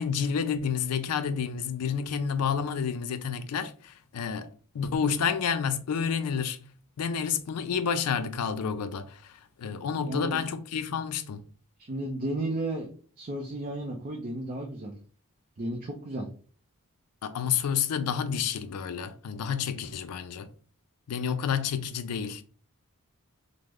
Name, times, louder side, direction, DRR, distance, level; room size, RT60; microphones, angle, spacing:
voice 1, 0.0-6.6 7.0-11.4 17.2-20.5 21.1-22.4, left 7 dB, 80° left, 0.4 m, -30 dB
voice 2, 10.0-10.4 11.9-12.9 13.2-14.9 15.6-16.3, right 1 dB, 40° right, 0.5 m, -33 dB
3.1 x 2.0 x 3.5 m
head